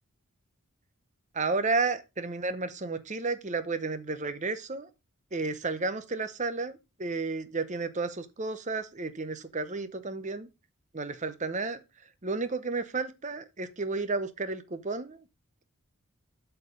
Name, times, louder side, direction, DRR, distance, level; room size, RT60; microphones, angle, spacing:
voice 1, 1.3-4.9 5.3-10.5 10.9-11.8 12.2-15.2, right 3 dB, 30° right, 0.8 m, -32 dB
8.3 x 4.6 x 5.1 m
head